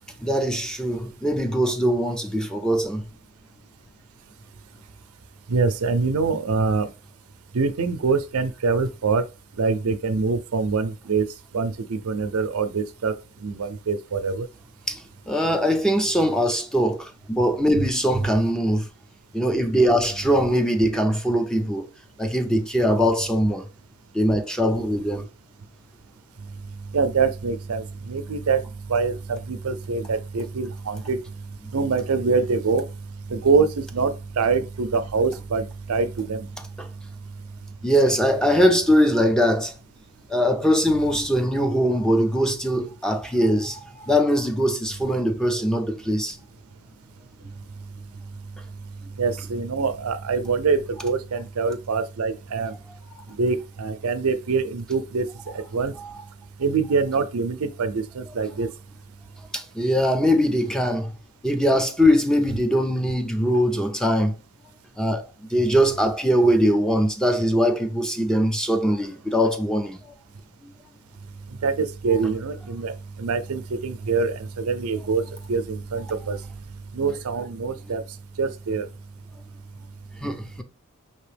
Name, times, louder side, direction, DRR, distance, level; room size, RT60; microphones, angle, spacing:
voice 1, 0.2-3.0 14.9-15.0 15.3-18.9 19.3-21.9 22.2-23.7 24.1-25.3 36.8-36.9 37.8-39.7 40.3-46.4 56.0-56.1 59.5-61.1 61.4-64.3 65.0-70.0 80.2-80.6, equal, 5° left, 0.5 m, -21 dB
voice 2, 5.5-6.9 7.5-9.2 9.6-11.3 11.5-13.1 13.4-14.5 26.9-28.6 28.9-31.2 31.7-32.9 33.3-36.5 49.2-52.7 53.4-55.3 55.5-55.9 56.6-58.7 71.6-72.9 73.2-75.2 75.5-76.4 76.9-78.0 78.4-78.9, right 4 dB, 90° right, 0.5 m, -24 dB
5.3 x 2.9 x 3.3 m
head